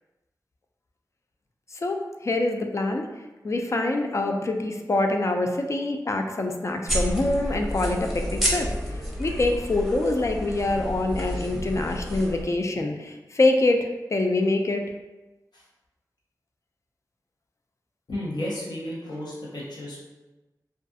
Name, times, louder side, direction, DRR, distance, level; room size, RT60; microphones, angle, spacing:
voice 1, 1.7-3.0 3.4-14.8, left 2 dB, 45° left, 4 dB, 0.3 m, -25 dB
sound 1, 6.9-12.4, equal, 5° right, 0.8 m, -30 dB
voice 2, 18.1-20.0, left 1 dB, 75° left, -6 dB, 0.8 m, -33 dB
2.3 x 2.3 x 2.6 m, 1.1 s
cardioid pair, 40°, 7 cm